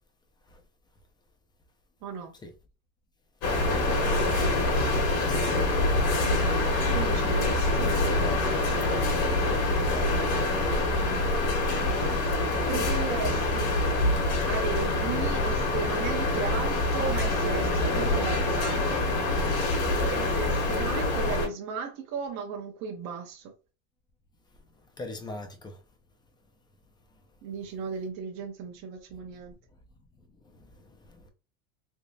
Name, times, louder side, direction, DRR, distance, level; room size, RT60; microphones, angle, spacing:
voice 1, 2.0-2.4 6.2-6.5 6.9-8.0 11.0-11.3 12.7-13.8 14.4-19.0 19.9-23.5 27.4-29.6, right 6 dB, 40° right, 0.7 m, -36 dB
sound 1, 3.4-21.5, left 2 dB, 65° left, 1.7 m, -25 dB
voice 2, 9.9-10.3 25.0-25.8 30.4-31.3, left 2 dB, 10° left, 0.5 m, -41 dB
3.5 x 2.8 x 2.6 m
supercardioid pair, 130°, 42 cm